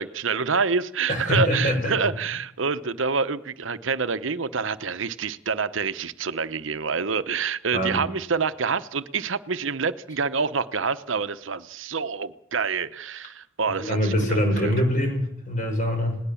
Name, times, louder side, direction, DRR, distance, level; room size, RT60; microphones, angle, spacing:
voice 1, 0.0-14.7, right 5 dB, 70° right, 0.9 m, -27 dB
voice 2, 1.1-1.9 7.7-8.0 13.8-16.2, left 1 dB, 40° left, 6.7 m, -24 dB
20.0 x 18.5 x 7.1 m
head